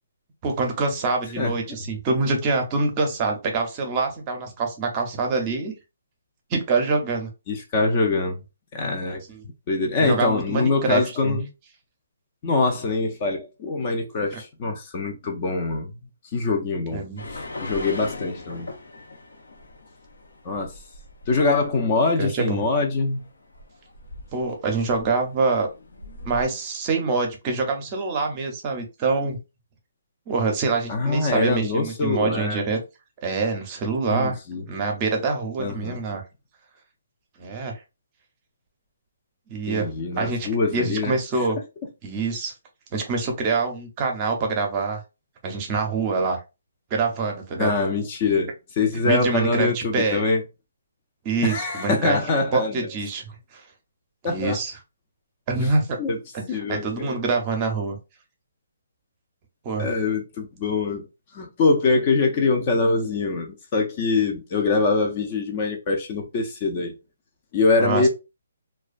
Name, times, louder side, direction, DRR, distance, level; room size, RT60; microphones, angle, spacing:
voice 1, 0.4-5.7 6.5-7.3 9.3-9.4 10.0-11.4 16.9-17.2 22.2-22.6 24.3-25.7 26.2-29.4 30.3-32.8 33.2-34.4 34.7-36.2 37.4-37.8 39.5-39.9 40.2-41.6 42.0-42.5 42.9-45.0 45.4-46.4 46.9-47.7 49.0-50.2 51.2-52.2 52.5-53.6 54.3-54.7 55.5-56.0 56.3-56.4 56.7-58.0 59.6-59.9 67.8-68.1, right 4 dB, 25° right, 0.6 m, -25 dB
voice 2, 7.5-8.4 8.7-9.2 9.7-11.5 12.4-15.9 16.3-17.0 17.3-18.7 20.4-20.7 21.3-23.2 30.9-32.6 34.1-34.7 35.6-36.0 39.7-41.1 47.6-50.4 51.4-52.9 54.2-54.6 56.0-56.2 56.5-57.2 59.8-61.0 61.3-67.0 67.5-68.1, left 3 dB, 30° left, 0.4 m, -24 dB
sound 1, 17.2-26.4, left 2 dB, 85° left, 0.6 m, -40 dB
2.3 x 2.2 x 2.4 m
hypercardioid pair, 155°, 0 cm